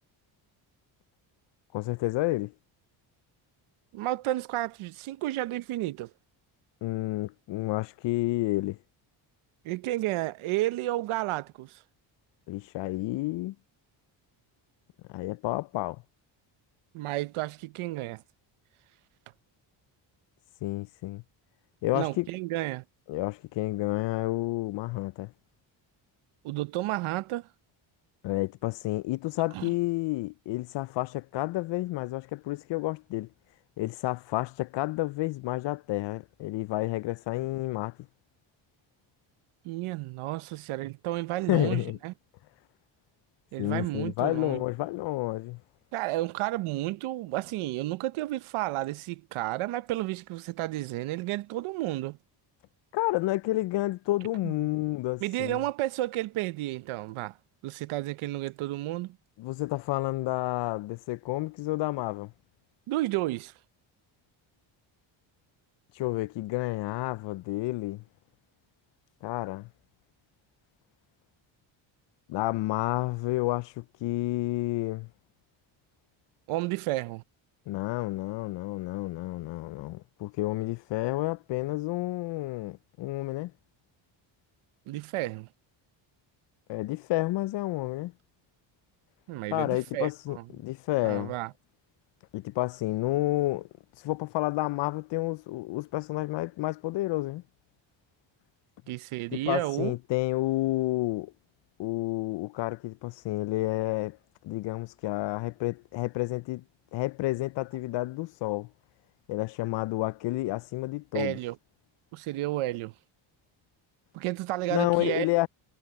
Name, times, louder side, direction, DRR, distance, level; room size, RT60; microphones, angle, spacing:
voice 1, 1.7-2.5 6.8-8.8 12.5-13.6 15.1-16.0 20.6-21.2 21.8-22.3 23.1-25.3 28.2-33.3 33.8-38.0 41.5-42.0 43.6-45.6 52.9-55.6 59.4-62.3 66.0-68.0 69.2-69.7 72.3-75.1 77.7-83.5 86.7-88.1 89.5-91.3 92.3-93.7 94.0-97.4 99.3-101.3 101.8-104.2 104.4-106.6 106.9-108.7 109.3-111.4 114.7-115.5, left 18 dB, 60° left, 0.5 m, -30 dB
voice 2, 3.9-6.1 9.6-11.8 16.9-18.2 21.9-22.8 26.4-27.5 29.5-29.7 39.6-42.1 43.5-44.6 45.9-52.2 54.4-54.5 55.2-57.4 57.6-59.2 62.9-63.5 76.5-77.2 84.9-85.5 89.3-90.4 91.0-91.5 98.9-99.9 111.1-111.6 112.1-112.9 114.1-115.3, right 16 dB, 85° right, 0.9 m, -32 dB
cardioid pair, 100°, 48 cm